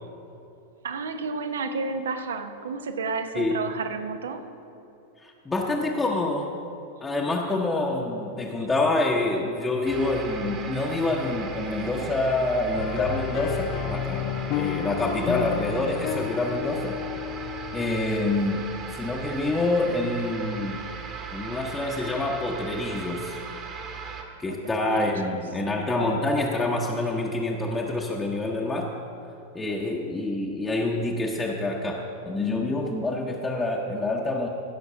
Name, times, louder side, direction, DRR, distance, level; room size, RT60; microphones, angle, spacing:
voice 1, 0.8-4.4 24.5-25.4 25.7-26.2, right 4 dB, 65° right, 8 dB, 0.8 m, -32 dB
voice 2, 5.2-6.5 7.0-17.0 17.4-18.7 18.9-20.8 21.3-23.4 24.4-28.9 29.5-34.5, left 2 dB, 10° left, -2 dB, 0.9 m, -27 dB
sound 1, 9.8-24.2, right 5 dB, 35° right, 1.4 m, -37 dB
sound 2, 12.8-18.4, left 13 dB, 45° left, 0.4 m, -31 dB
15.5 x 6.2 x 5.7 m, 2.9 s
figure-of-eight pair, 90°, 0 cm